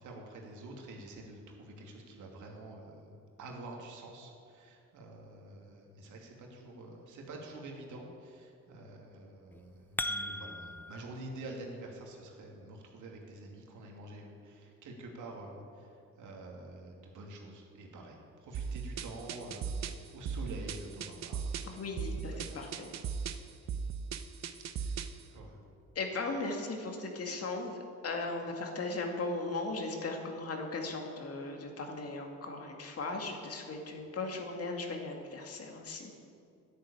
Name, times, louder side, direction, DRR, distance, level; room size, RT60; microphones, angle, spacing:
voice 1, 0.0-15.9 16.2-19.8 20.1-22.6 24.7-25.0 25.3-25.6, right 2 dB, 80° right, 0 dB, 2.7 m, -47 dB
sound 1, 9.5-11.0, left 1 dB, 5° left, 0.6 m, -37 dB
sound 2, 18.5-25.2, right 6 dB, 60° right, 0.9 m, -38 dB
voice 2, 21.6-22.9 26.0-27.8 28.0-36.1, left 3 dB, 50° left, 3 dB, 2.3 m, -37 dB
10.5 x 10.0 x 8.7 m, 2.5 s
cardioid pair, 90°, 30 cm